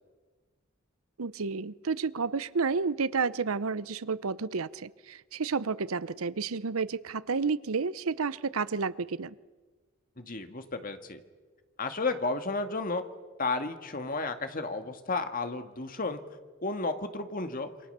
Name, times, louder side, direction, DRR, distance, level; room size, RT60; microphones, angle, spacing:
voice 1, 1.2-9.3, right 4 dB, 85° right, 18 dB, 0.7 m, -31 dB
voice 2, 10.2-11.2 11.8-13.0 13.4-16.2 16.6-17.7, left 3 dB, 40° left, 7 dB, 1.9 m, -32 dB
27.5 x 25.0 x 6.8 m, 1.4 s
head